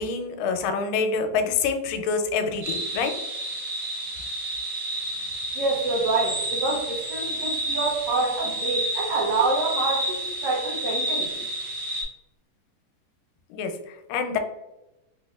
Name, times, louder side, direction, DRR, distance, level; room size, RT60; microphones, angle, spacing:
voice 1, 0.0-3.1 13.5-14.4, left 5 dB, 85° left, 5 dB, 2.2 m, -26 dB
sound 1, 2.6-12.0, right 1 dB, 60° right, 1.2 m, -30 dB
voice 2, 5.5-11.3, right 3 dB, 80° right, -4 dB, 1.5 m, -27 dB
5.3 x 2.1 x 2.3 m, 0.96 s
omnidirectional pair, 3.8 m